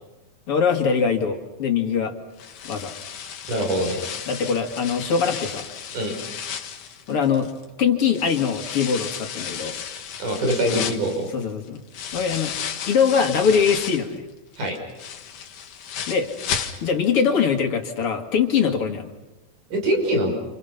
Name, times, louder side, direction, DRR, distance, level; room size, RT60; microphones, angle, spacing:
voice 1, 0.5-2.1 2.6-2.9 4.3-5.7 7.1-7.5 7.8-9.8 10.7-10.9 11.3-11.8 12.1-12.5 12.9-14.2 16.1-16.3 16.8-19.1, left 6 dB, 45° left, 4 dB, 2.9 m, -22 dB
sound 1, 2.4-7.7 8.1-14.1 14.5-17.2 17.5-17.6 18.0-18.1, left 8 dB, 80° left, 3.3 m, -33 dB
voice 2, 3.5-4.0 5.9-6.1 10.2-11.3 14.6-14.7 19.7-20.3, right 1 dB, 80° right, 2 dB, 7.3 m, -23 dB
29.0 x 28.0 x 5.9 m, 1.0 s
omnidirectional pair, 3.6 m